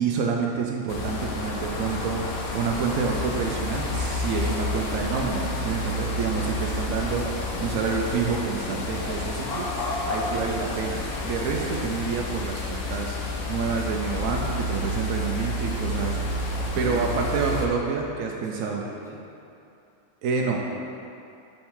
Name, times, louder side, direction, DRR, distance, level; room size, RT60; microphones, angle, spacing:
voice 1, 0.0-13.2 13.5-16.3 16.8-18.8 20.2-20.6, right 5 dB, 75° right, 0 dB, 1.0 m, -28 dB
sound 1, 0.9-17.7, left 2 dB, 70° left, 1.1 m, -30 dB
voice 2, 16.5-18.0 18.4-19.2 20.4-20.8, left 1 dB, 5° right, -6 dB, 0.8 m, -40 dB
7.0 x 5.3 x 3.7 m, 2.6 s
omnidirectional pair, 1.4 m